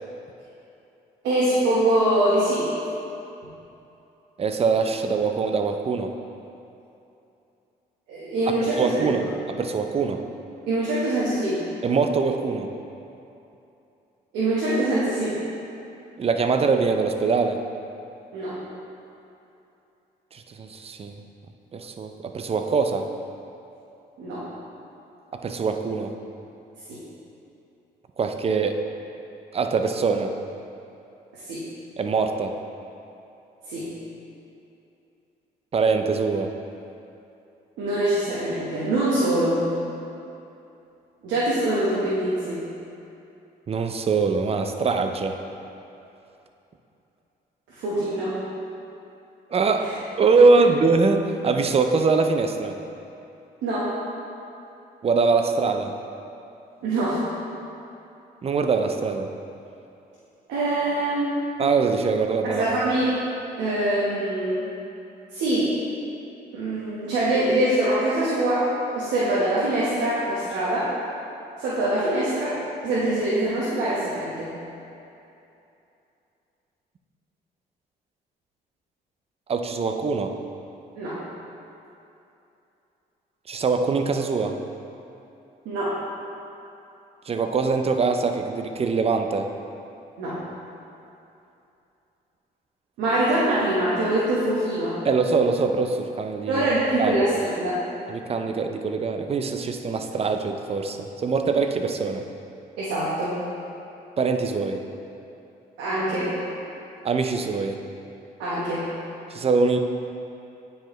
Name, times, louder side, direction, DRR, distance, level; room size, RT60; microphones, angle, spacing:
voice 1, 1.2-2.7 8.1-9.1 10.7-11.6 14.3-15.3 18.3-18.6 24.2-24.4 26.9-27.0 31.5-31.7 33.7-33.9 37.8-39.6 41.2-42.7 47.7-48.4 49.8-49.9 53.6-53.9 56.8-57.2 60.5-61.4 62.4-63.1 63.6-64.6 65.3-65.7 66.5-68.7 68.9-70.9 71.6-72.5 72.8-74.5 81.0-81.2 85.6-86.0 90.2-90.4 93.0-95.0 96.5-97.8 102.8-103.4 105.8-106.3 108.4-108.9, right 1 dB, 85° right, -9 dB, 1.2 m, -24 dB
voice 2, 4.4-6.1 8.7-10.2 11.8-12.7 16.2-17.6 20.3-21.1 21.7-23.1 25.3-26.1 28.2-28.8 29.5-30.3 32.0-32.6 35.7-36.5 43.7-45.4 49.5-52.8 55.0-55.9 58.4-59.3 61.6-62.7 79.5-80.3 83.5-84.6 87.3-89.5 95.0-96.7 97.0-97.2 98.1-102.2 104.2-104.8 107.0-107.8 109.3-109.8, right 4 dB, 35° right, 6 dB, 0.5 m, -23 dB
9.4 x 4.6 x 3.1 m, 2.8 s
supercardioid pair, 75°, 18 cm